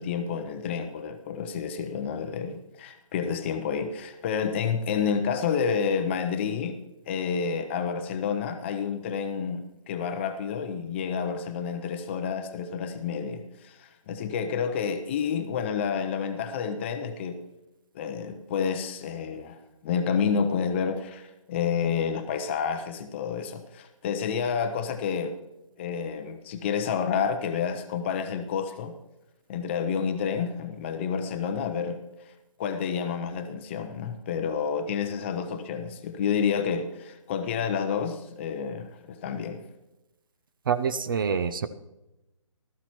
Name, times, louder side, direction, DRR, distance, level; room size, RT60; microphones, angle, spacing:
voice 1, 0.0-6.8 7.1-17.4 17.9-19.6 19.8-25.3 25.8-28.9 29.5-32.0 32.6-39.6, left 6 dB, 20° left, 8 dB, 0.6 m, -29 dB
voice 2, 40.7-41.7, right 6 dB, 40° right, 13 dB, 0.5 m, -26 dB
14.5 x 13.5 x 3.0 m, 0.94 s
figure-of-eight pair, 150°, 17 cm